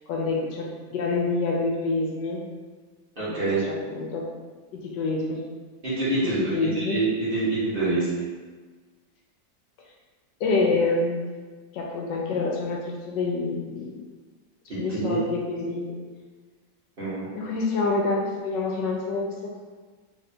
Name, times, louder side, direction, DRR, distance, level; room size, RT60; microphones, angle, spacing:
voice 1, 0.1-2.4 3.3-3.4 3.6-4.3 4.7-5.4 6.2-7.0 10.4-11.2 11.7-14.1 14.8-16.0 17.3-19.6, left 3 dB, 75° left, -1 dB, 1.2 m, -27 dB
voice 2, 3.2-3.6 5.8-8.1 14.7-15.2 17.0-17.3, right 3 dB, 35° right, -11 dB, 1.2 m, -26 dB
3.6 x 2.5 x 4.2 m, 1.4 s
omnidirectional pair, 2.0 m